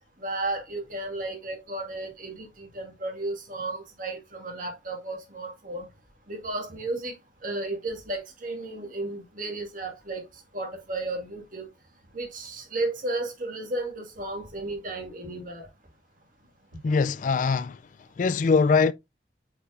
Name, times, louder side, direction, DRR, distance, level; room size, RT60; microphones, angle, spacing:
voice 1, 0.2-5.9 6.3-7.2 7.4-11.7 12.1-15.7, right 2 dB, 50° right, 1.9 m, -33 dB
voice 2, 16.8-17.8 18.2-18.9, left 4 dB, 45° left, 0.3 m, -22 dB
8.2 x 4.9 x 2.5 m
head